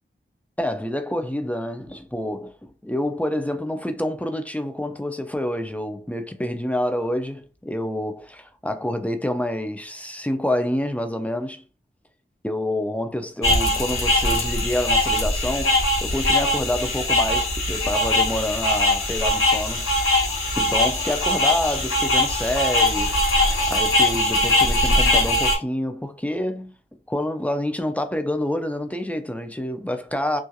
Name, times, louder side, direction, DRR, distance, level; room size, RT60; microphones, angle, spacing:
voice 1, 0.6-2.5 2.8-11.6 12.4-19.9 20.6-23.2 23.7-26.7 27.1-30.4, left 1 dB, 5° left, 0.4 m, -27 dB
sound 1, 13.4-25.6, left 1 dB, 80° left, 1.1 m, -21 dB
2.7 x 2.4 x 2.3 m
wide cardioid pair, 45°, 21 cm